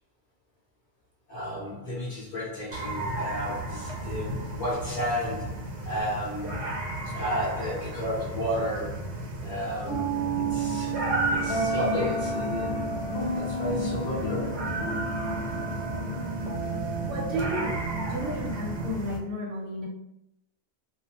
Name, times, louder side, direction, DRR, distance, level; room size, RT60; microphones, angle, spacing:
voice 1, 1.3-6.7 7.0-11.0 11.3-13.0 13.3-14.6, equal, 55° left, -7 dB, 0.9 m, -33 dB
sound 1, 2.7-19.2, right 1 dB, 85° right, 1.0 m, -34 dB
sound 2, 9.9-18.9, right 2 dB, 85° left, 1.0 m, -31 dB
voice 2, 17.1-17.8 18.1-19.9, equal, 60° right, -2 dB, 0.9 m, -32 dB
2.4 x 2.1 x 2.8 m, 0.80 s
omnidirectional pair, 1.1 m